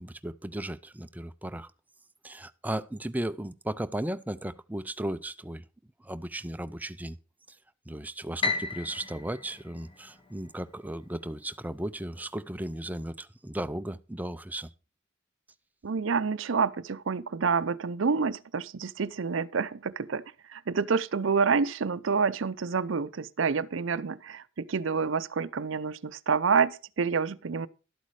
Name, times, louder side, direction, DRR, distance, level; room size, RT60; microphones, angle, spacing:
voice 1, 0.0-1.7 2.2-5.6 6.0-7.2 7.5-7.6 7.9-14.7, right 1 dB, 10° right, 0.5 m, -36 dB
Piano, 8.4-10.7, left 3 dB, 25° left, 1.7 m, -34 dB
voice 2, 15.8-20.2 20.5-27.7, right 5 dB, 65° right, 0.6 m, -28 dB
12.0 x 8.3 x 4.8 m
head